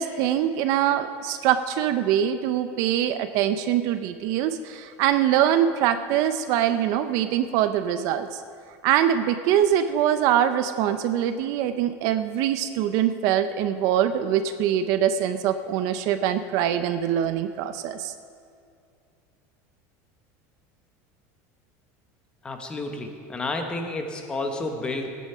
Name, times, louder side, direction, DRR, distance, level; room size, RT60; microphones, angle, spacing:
voice 1, 0.0-8.4 8.8-18.1, right 10 dB, 45° right, 10 dB, 0.5 m, -23 dB
voice 2, 22.4-25.1, left 2 dB, 10° left, 4 dB, 0.9 m, -31 dB
16.5 x 9.3 x 5.6 m, 2.4 s
cardioid pair, 180°, 8 cm